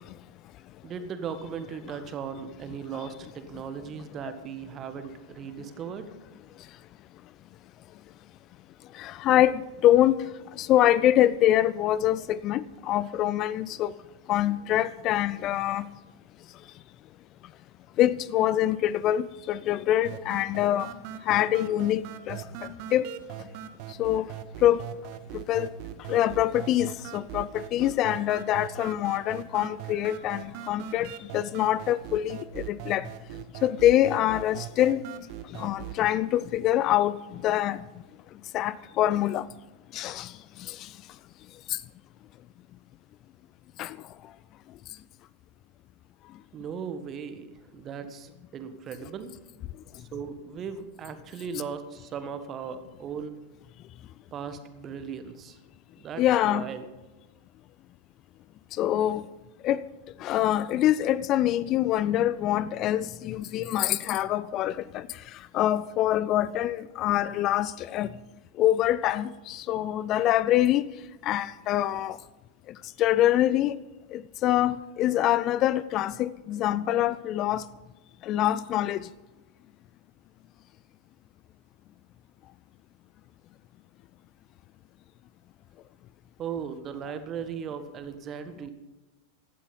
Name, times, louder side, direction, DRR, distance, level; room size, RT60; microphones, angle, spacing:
voice 1, 0.8-6.1 46.5-49.3 49.9-53.4 54.3-55.6 56.0-56.8 86.4-88.7, right 7 dB, 30° right, 1.6 m, -37 dB
voice 2, 8.9-10.1 10.6-13.9 14.3-15.8 18.0-20.9 21.3-22.4 22.9-23.1 24.0-24.3 24.6-24.8 25.3-25.7 26.1-33.1 33.6-35.0 35.5-37.8 38.5-39.5 39.9-40.3 40.7-40.8 43.8-44.0 56.2-56.7 58.8-59.2 59.6-59.8 60.2-65.1 65.5-68.1 68.6-70.8 71.2-72.2 73.0-73.8 74.1-77.6 78.2-79.1, left 12 dB, 35° left, 0.4 m, -25 dB
sound 1, 20.0-36.0, right 11 dB, 45° right, 1.1 m, -41 dB
17.0 x 12.0 x 5.5 m
figure-of-eight pair, 90°, 0 cm